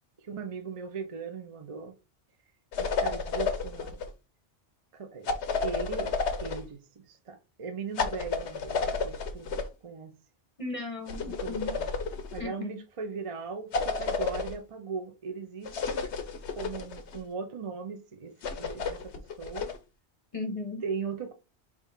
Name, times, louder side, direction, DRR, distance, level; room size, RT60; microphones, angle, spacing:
voice 1, 0.2-1.9 2.8-4.0 4.9-10.1 11.3-11.9 12.3-16.1 16.6-19.7 20.8-21.3, right 5 dB, 40° right, 0.5 m, -39 dB
sound 1, 2.7-4.1 5.3-6.7 8.0-9.7 11.1-12.4 13.7-14.6 15.7-17.2 18.4-19.8, left 4 dB, 80° left, 1.0 m, -31 dB
voice 2, 10.6-11.7 12.4-12.8 20.3-20.8, left 2 dB, 35° left, 0.8 m, -36 dB
3.6 x 2.8 x 4.6 m
omnidirectional pair, 1.1 m